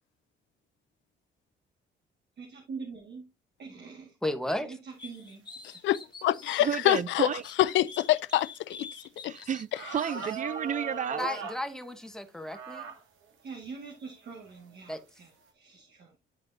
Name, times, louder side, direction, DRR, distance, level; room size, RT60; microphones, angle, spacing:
voice 1, 2.4-3.3 3.6-4.2 4.6-5.5 13.4-16.2, right 5 dB, 55° right, 1.8 m, -44 dB
voice 2, 4.2-4.7 11.2-12.9 14.9-15.0, left 1 dB, 5° left, 1.2 m, -33 dB
sound 1, 5.0-7.0 7.4-10.4, left 3 dB, 20° left, 1.8 m, -47 dB
voice 3, 5.8-7.3 7.6-8.9 9.2-9.3, left 14 dB, 70° left, 0.4 m, -26 dB
voice 4, 6.6-7.4 9.2-11.3, right 8 dB, 40° right, 0.5 m, -31 dB
sound 2, 9.1-9.2 9.7-11.6 12.5-13.0 13.6-13.7 14.5-14.8, right 4 dB, 80° right, 1.7 m, -38 dB
11.0 x 4.2 x 2.6 m
cardioid pair, 90°, 20 cm